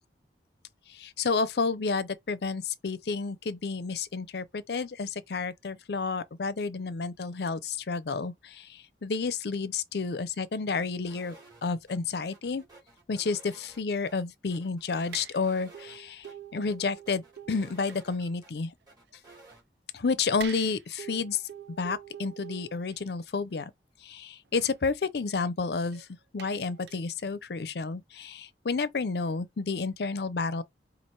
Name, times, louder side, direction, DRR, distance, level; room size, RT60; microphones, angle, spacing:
voice 1, 0.9-11.4 11.6-12.6 13.1-16.3 16.5-18.7 19.9-21.4 21.8-23.7 24.0-26.1 26.3-30.6, left 4 dB, 65° left, 0.5 m, -31 dB
sound 1, 11.1-11.6 11.9-12.0 12.3-14.1 14.5-16.0 16.2-16.3 16.7-18.5 18.9-19.6, right 2 dB, 25° right, 2.7 m, -54 dB
sound 2, 15.1-15.5 15.7-18.3 19.1-19.3 20.4-23.1 24.5-24.7 25.9-26.0 26.4-27.0, right 9 dB, 70° right, 0.5 m, -45 dB
4.5 x 2.5 x 4.3 m
head